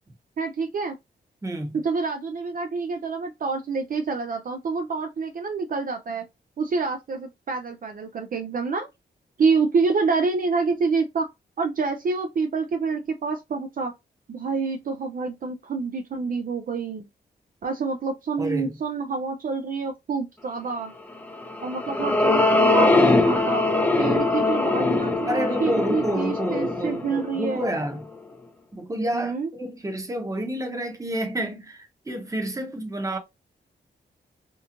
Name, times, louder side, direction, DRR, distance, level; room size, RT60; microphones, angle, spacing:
voice 1, 0.4-1.0 1.8-6.2 6.6-8.9 9.4-11.3 11.6-13.9 14.3-17.1 17.6-20.9 21.6-23.6 24.0-27.7 29.1-29.5, right 4 dB, 50° right, 0.4 m, -27 dB
voice 2, 1.4-1.8 18.4-18.8 25.3-28.1 28.7-33.2, right 1 dB, 20° right, 0.8 m, -29 dB
sound 1, 21.3-27.9, left 2 dB, 10° left, 0.5 m, -22 dB
2.9 x 2.3 x 2.5 m
cardioid pair, 65°, 18 cm